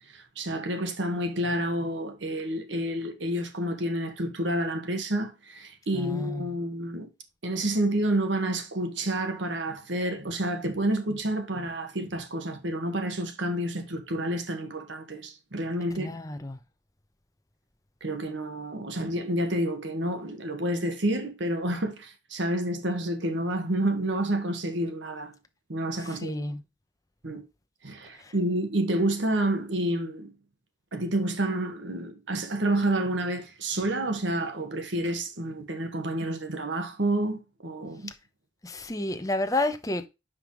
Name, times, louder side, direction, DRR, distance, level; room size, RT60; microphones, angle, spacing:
voice 1, 0.1-7.1 7.4-16.1 18.0-25.3 25.7-26.4 27.2-27.4 27.8-30.3 30.9-38.1, right 1 dB, 70° right, 1.5 m, -29 dB
voice 2, 5.9-6.5 15.9-16.6 26.0-26.6 28.2-28.3 38.6-40.1, left 2 dB, 15° left, 0.8 m, -31 dB
9.8 x 5.3 x 3.1 m
head